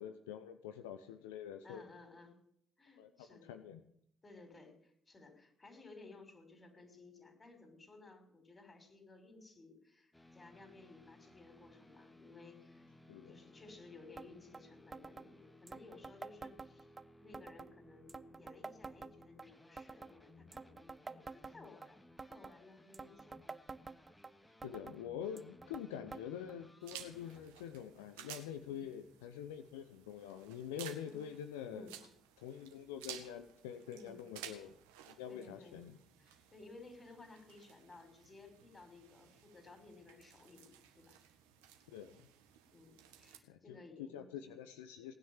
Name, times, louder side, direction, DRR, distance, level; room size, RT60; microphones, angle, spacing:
voice 1, 0.0-1.8 3.0-3.8 13.1-13.4 24.6-31.9 32.4-34.8 35.1-36.0 41.9-42.3 43.5-43.8 44.1-45.1, left 9 dB, 80° left, 9 dB, 0.8 m, -46 dB
voice 2, 1.6-2.4 2.8-3.5 4.2-12.9 13.3-16.9 17.2-22.0 22.2-23.4 25.9-26.2 28.7-28.9 31.0-31.3 31.7-32.0 33.9-34.2 35.3-35.8 36.2-41.2 42.7-44.5, left 3 dB, 30° left, 6 dB, 5.6 m, -57 dB
sound 1, 10.1-27.5, left 1 dB, 10° left, 2.2 m, -62 dB
sound 2, 14.2-14.3 14.5-14.6 14.9-15.3 15.7-17.0 17.3-17.7 18.1-19.5 19.8-20.1 20.5-21.9 22.2-22.6 22.9-24.3 24.6-25.0 25.4-25.9 26.1-26.2 26.5-26.6 27.4-27.5 28.2-28.3, right 4 dB, 30° right, 0.9 m, -48 dB
sound 3, 26.8-43.4, right 10 dB, 80° right, 1.7 m, -55 dB
19.0 x 9.9 x 7.3 m, 0.70 s
hypercardioid pair, 45°, 0 cm